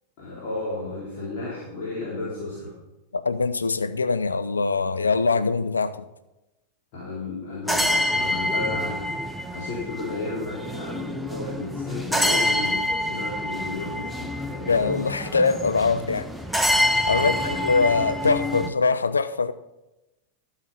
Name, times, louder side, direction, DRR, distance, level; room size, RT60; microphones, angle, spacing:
voice 1, 0.2-2.7 6.9-9.2 9.5-14.9 17.1-17.6, left 2 dB, 45° left, 3.3 m, -33 dB
voice 2, 3.1-6.0 14.7-16.3 17.1-19.5, left 4 dB, 75° left, 0.5 m, -23 dB
sound 1, 7.7-18.7, left 1 dB, ahead, 0.8 m, -27 dB
13.0 x 6.5 x 5.6 m
figure-of-eight pair, 90°, 0 cm